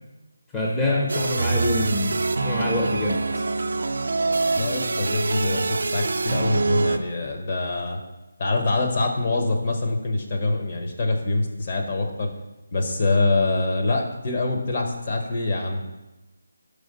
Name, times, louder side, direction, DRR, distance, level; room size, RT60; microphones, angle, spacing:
voice 1, 0.5-3.2, left 2 dB, 10° left, -5 dB, 0.6 m, -25 dB
sound 1, 1.1-7.0, right 3 dB, 65° right, 0.4 m, -25 dB
voice 2, 4.6-8.0 8.4-12.3 12.7-15.8, left 2 dB, 40° left, 1 dB, 0.9 m, -24 dB
5.0 x 4.7 x 4.0 m, 1.0 s
figure-of-eight pair, 160°, 0 cm